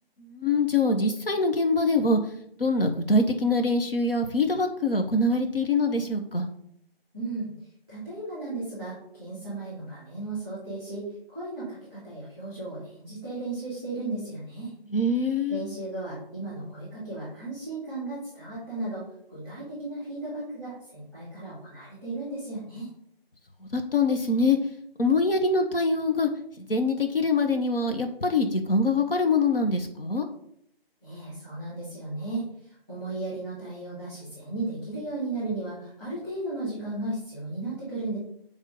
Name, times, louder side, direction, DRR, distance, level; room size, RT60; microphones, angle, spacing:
voice 1, 0.2-2.3 2.6-6.5 14.9-15.7 23.6-24.6 25.0-26.3 26.6-30.3, left 2 dB, 65° left, 5 dB, 1.0 m, -24 dB
voice 2, 7.1-14.7 15.5-22.9 31.0-38.2, right 2 dB, 10° left, -12 dB, 3.0 m, -35 dB
8.0 x 3.6 x 5.4 m, 0.70 s
figure-of-eight pair, 170°, 30 cm